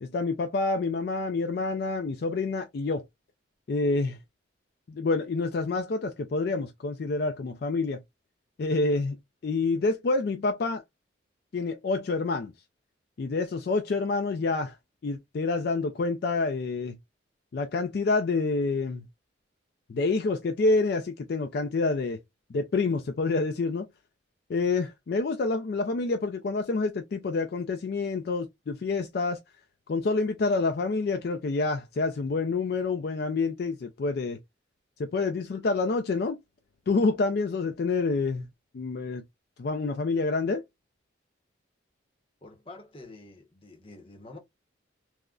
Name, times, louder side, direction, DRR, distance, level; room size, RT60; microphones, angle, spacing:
voice 1, 0.0-3.0 3.7-4.2 4.9-8.0 8.6-9.2 9.4-10.8 11.5-12.5 13.2-14.8 15.0-17.0 17.5-19.1 19.9-22.2 22.5-23.9 24.5-29.4 29.9-34.4 35.0-36.4 36.9-38.5 38.7-39.2 39.6-40.6, left 3 dB, 55° left, 0.3 m, -27 dB
voice 2, 42.4-44.4, left 2 dB, 30° left, 0.7 m, -47 dB
3.6 x 2.1 x 2.2 m
head